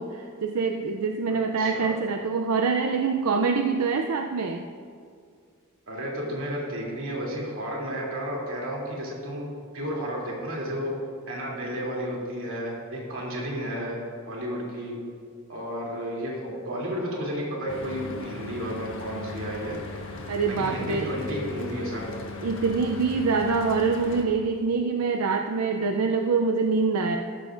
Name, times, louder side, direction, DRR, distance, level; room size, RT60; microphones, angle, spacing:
voice 1, 0.0-4.6 20.3-21.1 22.4-27.2, right 4 dB, 90° right, 4 dB, 0.5 m, -25 dB
voice 2, 1.3-1.9 5.9-9.5 9.7-10.9 11.3-14.0 14.2-15.0 15.5-19.8 20.4-22.1, equal, 65° right, -3 dB, 2.9 m, -32 dB
Mechanical fan, 17.7-24.2, left 3 dB, 60° left, 1.4 m, -38 dB
14.0 x 12.5 x 2.6 m, 2.2 s
head